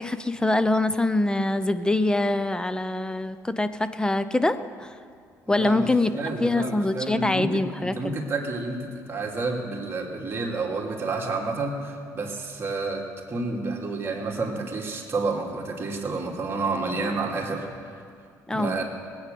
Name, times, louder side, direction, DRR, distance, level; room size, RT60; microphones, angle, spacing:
voice 1, 0.0-4.9 5.5-6.1 6.4-8.2 18.5-18.8, left 2 dB, 10° left, 12 dB, 0.7 m, -24 dB
voice 2, 5.4-18.0 18.5-18.8, right 3 dB, 35° right, -2 dB, 2.7 m, -30 dB
19.5 x 9.0 x 6.9 m, 2.2 s
cardioid pair, 85°, 7 cm